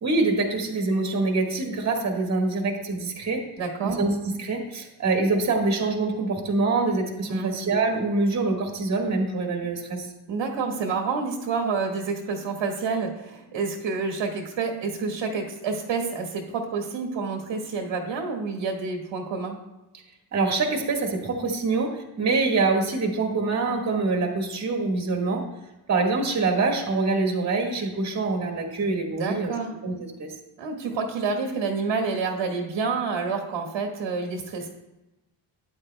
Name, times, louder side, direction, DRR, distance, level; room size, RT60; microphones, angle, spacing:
voice 1, 0.0-3.4 3.8-10.1 20.3-25.5 25.9-29.5 29.8-30.3, right 3 dB, 35° right, 1 dB, 1.6 m, -25 dB
voice 2, 3.6-4.0 7.3-7.6 10.3-19.6 29.2-29.7 30.6-34.7, right 4 dB, 80° right, 1 dB, 1.7 m, -28 dB
13.5 x 10.0 x 2.2 m, 1.0 s
wide cardioid pair, 165°, 45 cm